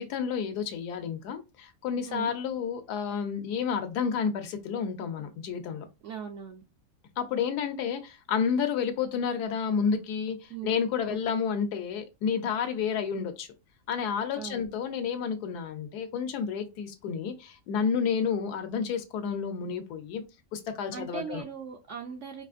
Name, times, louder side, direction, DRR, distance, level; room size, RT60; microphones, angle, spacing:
voice 1, 0.0-5.9 7.2-13.5 13.9-20.2 20.5-21.4, left 6 dB, 85° left, 1.1 m, -30 dB
voice 2, 6.0-6.6 10.5-10.7 14.3-14.6 20.9-22.4, right 7 dB, 70° right, 0.7 m, -39 dB
4.8 x 2.4 x 2.4 m
omnidirectional pair, 1.7 m